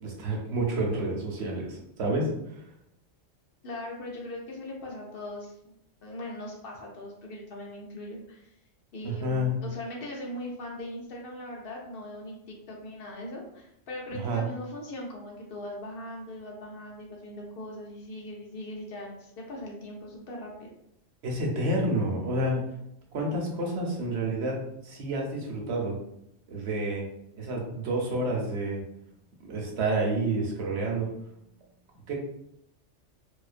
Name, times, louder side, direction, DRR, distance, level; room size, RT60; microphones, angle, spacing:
voice 1, 0.0-2.3 9.0-9.5 14.1-14.4 21.2-22.6 23.1-24.6 24.8-25.9 26.5-27.0 27.4-28.8 29.5-31.1 32.1-32.2, right 1 dB, 65° right, -1 dB, 0.9 m, -29 dB
voice 2, 3.6-5.6 6.0-8.5 8.9-20.7, left 1 dB, 60° left, -1 dB, 0.7 m, -40 dB
2.3 x 2.2 x 2.4 m, 0.77 s
omnidirectional pair, 1.3 m